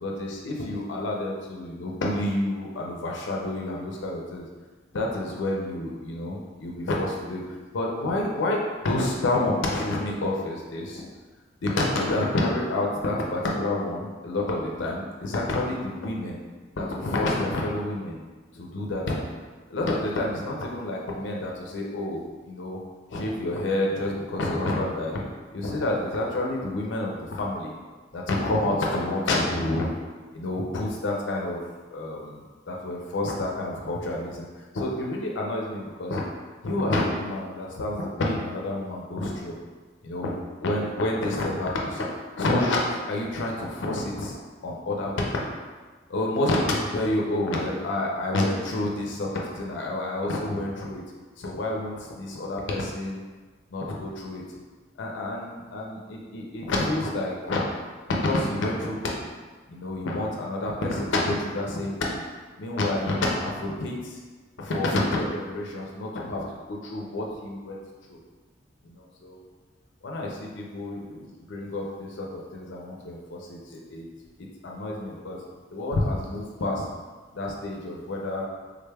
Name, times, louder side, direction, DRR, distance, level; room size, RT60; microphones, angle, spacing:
voice 1, 0.0-4.5 4.9-7.4 7.7-11.1 11.6-16.4 16.8-18.2 18.5-19.3 19.7-22.8 23.1-25.2 25.5-27.7 28.1-29.9 30.3-31.6 31.9-34.5 34.7-36.2 36.6-39.6 40.0-40.3 40.6-42.1 42.4-44.3 44.6-45.5 46.1-51.0 51.4-53.2 53.7-54.4 55.0-57.6 58.1-59.3 59.7-62.2 62.6-64.2 64.6-67.8 68.1-68.2 68.9-69.4 70.0-74.1 74.6-75.4 75.7-76.9 77.3-78.4, left 1 dB, 65° left, -1 dB, 0.5 m, -28 dB
3.5 x 2.2 x 3.3 m, 1.4 s
head